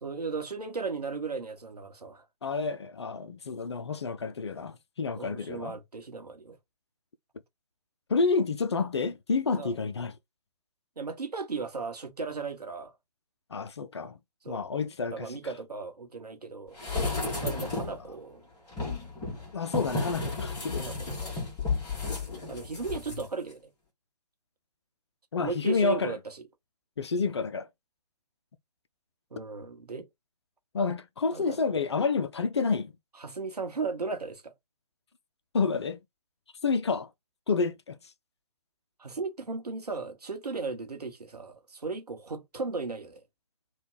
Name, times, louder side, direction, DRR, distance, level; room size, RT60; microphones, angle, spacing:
voice 1, 0.0-2.2 5.2-6.6 9.5-9.7 11.0-12.9 14.4-14.6 15.1-16.8 17.4-18.4 20.8-21.4 22.5-23.7 25.4-26.4 29.3-30.1 31.3-31.6 33.2-34.5 39.0-43.2, right 4 dB, 70° right, 1.0 m, -36 dB
voice 2, 2.4-5.8 8.1-10.1 13.5-14.2 14.5-15.3 17.6-17.7 19.5-20.9 25.3-26.2 27.0-27.7 30.7-32.9 35.5-36.0 36.6-37.1 37.5-38.0, left 4 dB, 45° left, 0.4 m, -29 dB
sound 1, 16.8-18.0 18.7-23.2 23.5-23.6, left 3 dB, 15° left, 1.2 m, -33 dB
3.1 x 2.3 x 3.8 m
figure-of-eight pair, 140°, 21 cm